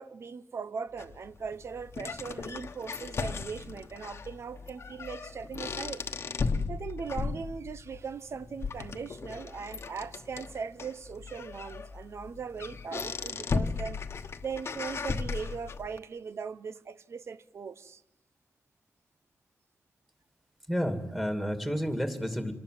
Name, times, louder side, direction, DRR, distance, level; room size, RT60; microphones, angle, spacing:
voice 1, 0.0-6.1 6.7-14.0 14.4-18.0, right 5 dB, 60° right, 0.8 m, -39 dB
sound 1, 1.0-16.0, left 4 dB, 55° left, 1.2 m, -36 dB
voice 2, 20.7-22.5, equal, 5° right, 2.4 m, -30 dB
27.0 x 19.0 x 7.6 m
wide cardioid pair, 180°, 5 cm